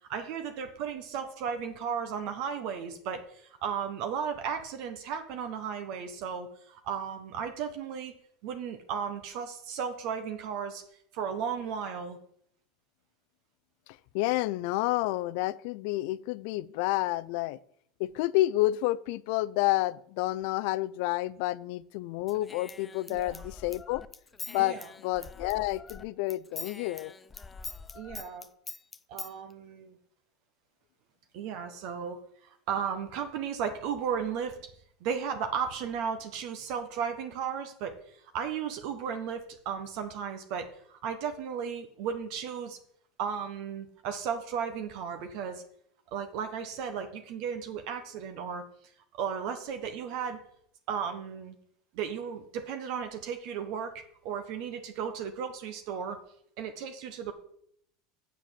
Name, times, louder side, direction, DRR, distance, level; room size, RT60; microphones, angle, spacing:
voice 1, 0.1-8.2 8.4-10.8 11.1-12.2 23.1-23.4 24.6-24.9 27.9-28.5 29.1-29.9 31.3-34.7 35.0-42.8 43.2-45.6 46.1-48.6 49.1-50.4 50.9-51.5 51.9-56.2 56.6-57.3, right 7 dB, 60° right, 6 dB, 1.1 m, -35 dB
voice 2, 14.1-17.6 18.0-24.0 24.5-27.1, left 17 dB, 70° left, 19 dB, 0.4 m, -29 dB
Human voice / Scissors, 22.3-26.0 26.3-29.3, left 4 dB, 20° left, 0.5 m, -44 dB
7.6 x 6.7 x 7.6 m, 0.69 s
supercardioid pair, 120°, 0 cm